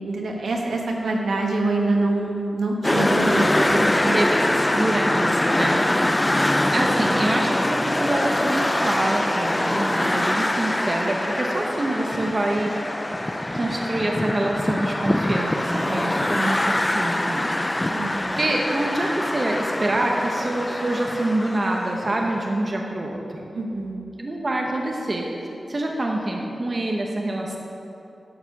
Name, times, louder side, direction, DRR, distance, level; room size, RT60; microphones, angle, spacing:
voice 1, 0.0-4.1 17.9-18.4 23.5-24.1, right 2 dB, 85° right, 0 dB, 1.4 m, -25 dB
sound 1, 2.8-22.4, left 1 dB, 15° left, 0.3 m, -24 dB
voice 2, 3.3-5.8 6.7-13.2 13.5-17.6 17.8-23.4 24.2-25.2 25.7-27.6, right 1 dB, 35° right, 0 dB, 0.9 m, -26 dB
11.5 x 4.8 x 6.8 m, 2.8 s
wide cardioid pair, 140°, 0 cm